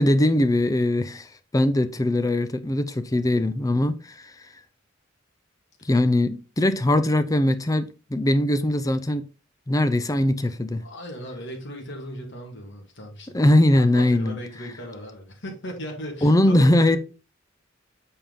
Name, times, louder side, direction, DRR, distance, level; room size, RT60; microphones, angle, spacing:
voice 1, 0.0-4.3 5.8-9.3 9.7-10.8 13.3-14.4 16.2-17.0, left 1 dB, 15° left, 0.5 m, -21 dB
voice 2, 10.8-13.4 13.8-17.0, equal, 60° left, 1.8 m, -37 dB
7.1 x 4.3 x 3.8 m
head